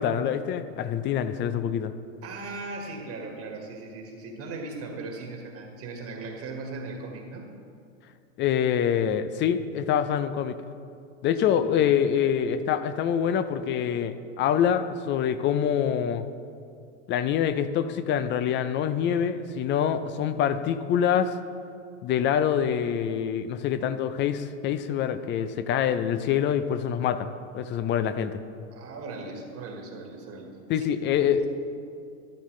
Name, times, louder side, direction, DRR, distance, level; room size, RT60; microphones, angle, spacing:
voice 1, 0.0-1.9 8.4-10.6 11.2-16.2 17.1-21.3 22.0-28.4 30.7-31.5, left 9 dB, 30° left, 12 dB, 0.5 m, -25 dB
voice 2, 2.2-7.5 11.5-11.6 28.7-30.9 31.3-31.5, right 3 dB, 35° right, 2 dB, 1.7 m, -38 dB
13.0 x 12.0 x 3.2 m, 2.4 s
hypercardioid pair, 110°, 40 cm